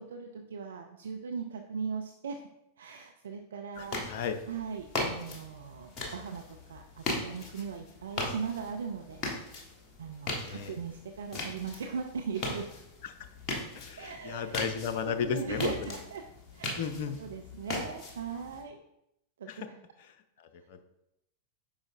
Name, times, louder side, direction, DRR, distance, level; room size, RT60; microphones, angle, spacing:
voice 1, 0.0-2.5 2.8-9.5 10.0-12.7 14.0-14.6 15.2-16.3 16.5-16.9 17.2-18.8 19.4-19.8, right 6 dB, 65° right, 4 dB, 0.4 m, -39 dB
voice 2, 3.8-4.4 10.4-10.7 13.0-13.1 13.7-16.0 16.8-17.2 19.5-19.7 20.4-20.8, left 7 dB, 50° left, 9 dB, 0.6 m, -34 dB
sound 1, 3.8-18.6, left 2 dB, 30° left, 1.5 m, -39 dB
8.7 x 5.5 x 2.6 m, 0.83 s
figure-of-eight pair, 90°, 0 cm